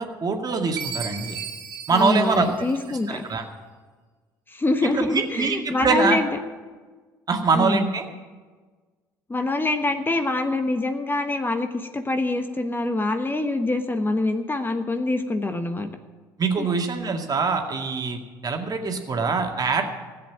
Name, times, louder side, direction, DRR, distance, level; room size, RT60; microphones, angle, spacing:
voice 1, 0.0-1.4 1.9-2.5 2.9-3.4 4.9-6.2 7.3-8.1 16.4-19.8, right 4 dB, 40° right, 3 dB, 2.1 m, -24 dB
Chime, 0.8-3.3, right 7 dB, 80° right, 2.2 m, -36 dB
voice 2, 1.9-3.2 4.5-6.3 7.5-7.9 9.3-15.9 16.6-16.7, left 2 dB, 20° left, 7 dB, 1.2 m, -25 dB
15.5 x 8.0 x 8.7 m, 1.4 s
hypercardioid pair, 60°, 10 cm